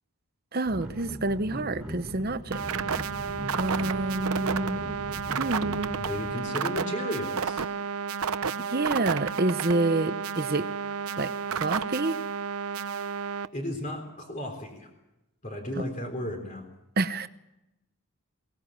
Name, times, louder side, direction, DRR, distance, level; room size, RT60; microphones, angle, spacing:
voice 1, 0.5-2.6 3.5-4.8 5.3-5.9 8.6-10.7 11.2-12.2 15.8-15.9 17.0-17.3, right 2 dB, 45° right, 12 dB, 0.9 m, -28 dB
sound 1, 0.7-6.3, equal, 5° right, 3.2 m, -39 dB
sound 2, 2.5-13.5, right 6 dB, 80° right, 0.8 m, -31 dB
voice 2, 6.0-7.6 13.5-14.9 15.4-16.6, left 1 dB, 35° left, 3 dB, 3.8 m, -34 dB
22.5 x 19.0 x 7.6 m, 0.93 s
head